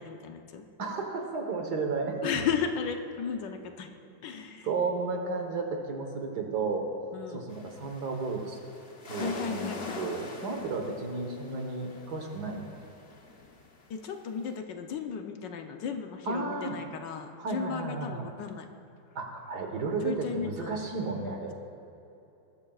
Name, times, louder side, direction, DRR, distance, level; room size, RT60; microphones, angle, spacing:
voice 1, 0.0-0.6 2.2-3.9 4.2-4.7 7.1-7.6 9.2-10.1 13.9-18.7 20.0-20.7, left 6 dB, 75° left, 5 dB, 1.5 m, -35 dB
voice 2, 0.8-2.2 4.6-6.9 7.3-8.6 9.1-12.8 16.3-16.8 17.4-18.3 19.2-21.5, right 4 dB, 65° right, 3 dB, 1.9 m, -33 dB
sound 1, 7.5-14.6, left 3 dB, 40° left, 1.0 m, -44 dB
19.5 x 13.0 x 2.4 m, 2.9 s
omnidirectional pair, 2.0 m